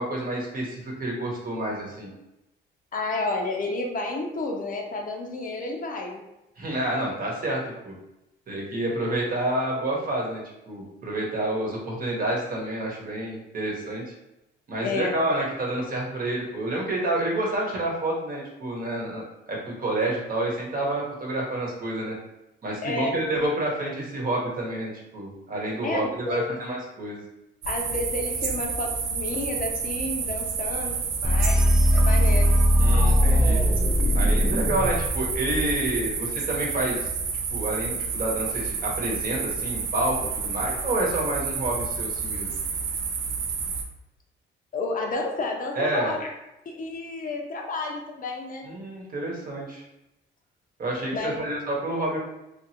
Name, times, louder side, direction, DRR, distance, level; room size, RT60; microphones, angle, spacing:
voice 1, 0.0-2.1 6.6-7.9 8.5-14.0 14.7-22.2 22.6-27.2 32.8-33.6 34.1-37.1 37.5-42.5 45.7-46.2 48.7-49.8 50.8-52.2, right 1 dB, 45° right, -3 dB, 1.0 m, -29 dB
voice 2, 2.9-6.3 14.8-15.2 22.8-23.2 25.8-26.4 27.7-31.6 31.9-32.5 44.7-46.3 46.7-48.7 51.1-51.3, left 2 dB, 45° left, 1 dB, 0.6 m, -31 dB
sound 1, 27.6-43.8, right 5 dB, 90° right, 0.5 m, -30 dB
sound 2, 31.2-36.1, equal, 5° right, 0.4 m, -20 dB
2.8 x 2.5 x 2.8 m, 0.91 s
cardioid pair, 90°, 20 cm